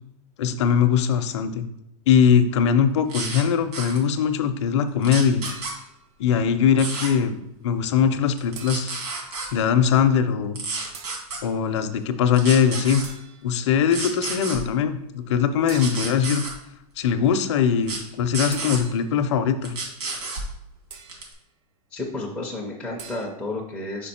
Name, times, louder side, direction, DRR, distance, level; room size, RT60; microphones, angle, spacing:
voice 1, 0.4-1.7 2.1-5.4 6.2-9.0 9.5-10.6 11.4-13.0 13.4-16.4 17.0-19.8, left 7 dB, 50° left, 8 dB, 0.6 m, -21 dB
sound 1, 3.1-3.4 3.7-4.0 5.0-5.7 6.8-7.1 8.4-9.5 10.6-11.4 12.3-13.1 13.9-14.6 15.8-16.5 17.8-18.0 18.3-18.8 19.6-20.5 21.1-21.3, right 3 dB, 75° right, 2.4 m, -30 dB
sound 2, 5.4-6.1 8.5-9.2 10.9-11.3 13.0-13.6 15.7-16.3 18.5-19.2 20.9-21.4 23.0-23.3, right 6 dB, 45° right, 0.7 m, -43 dB
voice 2, 21.9-24.1, left 2 dB, ahead, -4 dB, 0.4 m, -31 dB
5.2 x 5.1 x 4.2 m, 0.80 s
supercardioid pair, 175°, 20 cm